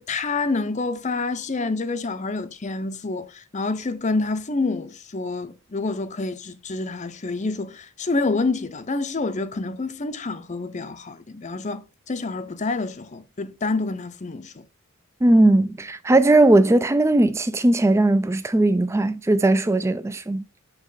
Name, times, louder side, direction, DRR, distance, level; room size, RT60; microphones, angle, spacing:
voice 1, 0.0-14.5, left 3 dB, 30° left, 0.6 m, -28 dB
voice 2, 15.2-20.4, right 2 dB, 10° right, 0.3 m, -18 dB
8.3 x 3.1 x 3.9 m
head